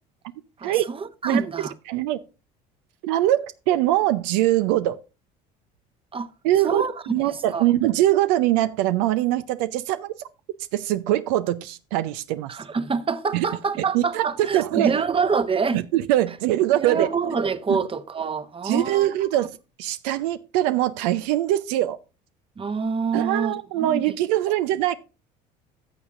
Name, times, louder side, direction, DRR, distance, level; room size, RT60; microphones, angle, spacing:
voice 1, 0.6-1.7 6.1-6.3 6.6-7.6 12.5-15.8 16.3-16.4 16.7-19.5 22.6-24.2 24.5-24.6, right 5 dB, 25° right, 0.9 m, -26 dB
voice 2, 1.9-2.2 3.0-5.0 6.4-6.8 7.1-10.1 10.7-12.5 13.3-13.4 13.9-14.2 14.5-15.0 15.7-17.1 17.7-17.8 18.6-19.5 19.8-22.0 23.1-24.9, right 14 dB, 80° right, 0.5 m, -22 dB
14.0 x 7.1 x 2.5 m
hypercardioid pair, 75°, 21 cm